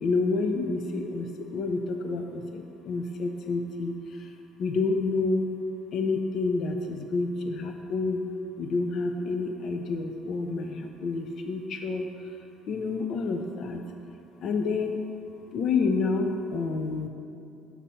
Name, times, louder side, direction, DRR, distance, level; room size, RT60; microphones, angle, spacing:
voice 1, 0.0-3.9 4.6-5.4 5.9-8.2 8.6-12.1 12.7-13.8 14.4-15.0 15.5-17.1, left 3 dB, 55° left, 5 dB, 0.5 m, -28 dB
7.4 x 4.1 x 5.5 m, 2.6 s
cardioid pair, 125°, 0 cm